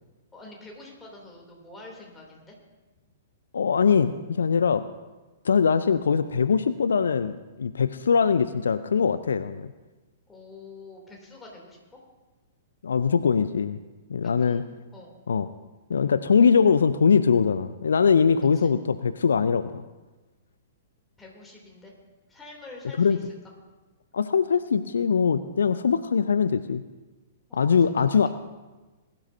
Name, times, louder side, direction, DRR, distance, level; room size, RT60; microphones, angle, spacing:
voice 1, 0.3-2.6 10.3-12.0 14.2-15.2 18.6-18.7 21.2-21.9 22.3-23.3 27.5-28.3, left 2 dB, 10° left, -1 dB, 3.0 m, -46 dB
voice 2, 3.5-4.8 5.4-9.7 12.8-13.8 14.1-14.6 15.3-15.5 15.9-19.8 23.0-23.2 24.1-26.8 27.5-28.3, left 6 dB, 65° left, 13 dB, 0.4 m, -22 dB
21.0 x 12.0 x 2.8 m, 1.2 s
figure-of-eight pair, 110°, 0 cm